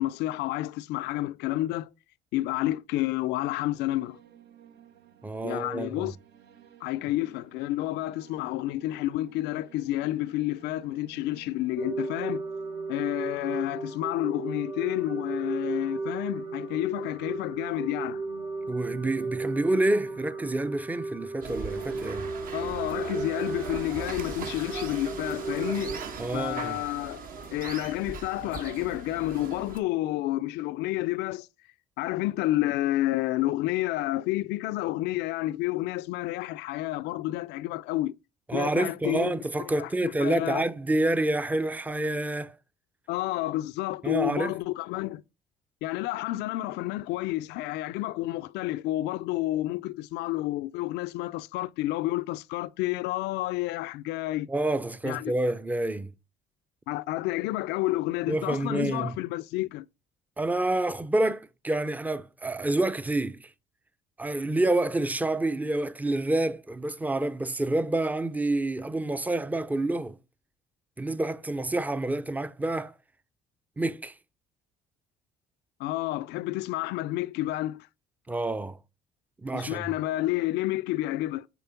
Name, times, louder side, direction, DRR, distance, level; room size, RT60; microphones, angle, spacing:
voice 1, 0.0-1.9 2.3-4.2 5.4-6.2 6.8-12.5 12.9-18.2 22.5-25.9 26.3-27.3 27.5-31.5 32.0-38.1 38.5-39.4 39.8-40.6 43.1-45.2 45.8-54.5 55.0-55.3 56.9-59.9 75.8-77.9 79.5-81.5, left 16 dB, 85° left, 0.4 m, -30 dB
sound 1, 3.5-20.3, right 11 dB, 75° right, 1.0 m, -54 dB
voice 2, 5.2-6.1 18.7-22.3 26.2-26.8 38.5-42.6 44.0-44.6 54.5-56.1 58.3-59.2 60.4-63.5 64.2-70.2 71.0-72.9 73.8-74.2 78.3-78.8 79.4-79.9, right 2 dB, 10° right, 0.5 m, -28 dB
sound 2, 11.8-26.0, right 3 dB, 25° right, 0.8 m, -35 dB
sound 3, 21.4-29.8, right 5 dB, 55° right, 1.2 m, -39 dB
7.0 x 4.5 x 5.7 m
cardioid pair, 110°, 17 cm